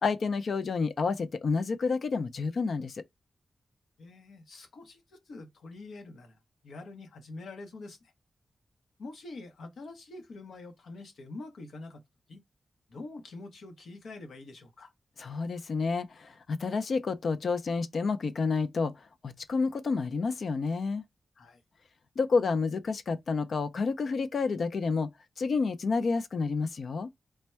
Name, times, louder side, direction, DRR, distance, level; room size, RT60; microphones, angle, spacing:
voice 1, 0.0-3.0 15.2-18.9 19.2-21.0 22.2-25.1 25.4-27.1, left 4 dB, 65° left, 0.4 m, -29 dB
voice 2, 4.0-8.1 9.0-12.0 12.3-12.4 12.9-14.9 21.4-21.6, left 2 dB, 90° left, 0.8 m, -45 dB
3.4 x 2.1 x 4.3 m
wide cardioid pair, 115°, 0 cm